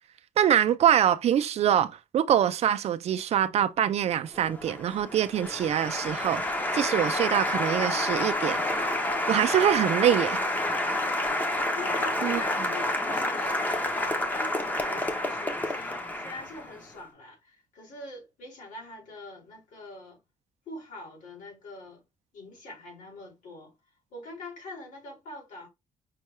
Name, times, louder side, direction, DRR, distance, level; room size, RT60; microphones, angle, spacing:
voice 1, 0.4-6.4 6.7-8.6 9.3-10.4 12.2-12.4, right 10 dB, 50° right, 0.4 m, -24 dB
Applause, 4.3-16.8, left 1 dB, 10° left, 0.6 m, -29 dB
voice 2, 11.7-13.9 14.3-20.2 20.7-22.0 22.3-23.7 24.1-25.7, left 2 dB, 70° left, 2.6 m, -43 dB
5.5 x 2.2 x 3.0 m
cardioid pair, 170°, 14 cm